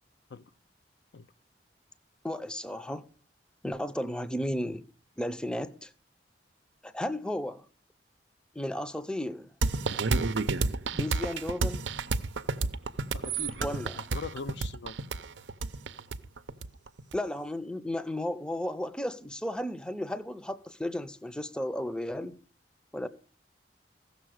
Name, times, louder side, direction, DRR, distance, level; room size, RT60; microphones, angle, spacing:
voice 1, 2.2-3.0 3.6-4.9 5.2-5.9 6.8-7.7 8.5-9.5 10.9-11.8 13.6-14.1 17.1-22.4 22.9-23.1, left 1 dB, 5° left, 0.5 m, -34 dB
sound 1, 9.6-17.2, right 3 dB, 90° right, 0.6 m, -30 dB
voice 2, 13.1-14.9, left 4 dB, 80° left, 0.5 m, -41 dB
15.5 x 6.8 x 6.3 m
head